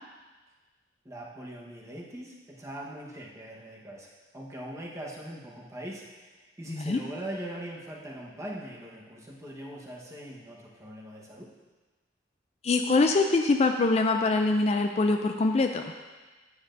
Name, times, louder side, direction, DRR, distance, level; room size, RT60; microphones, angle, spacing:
voice 1, 1.0-11.5, right 1 dB, 20° right, -3 dB, 1.2 m, -41 dB
voice 2, 6.7-7.0 12.6-15.8, left 3 dB, 35° left, 5 dB, 0.4 m, -24 dB
9.7 x 8.7 x 2.6 m, 1.3 s
head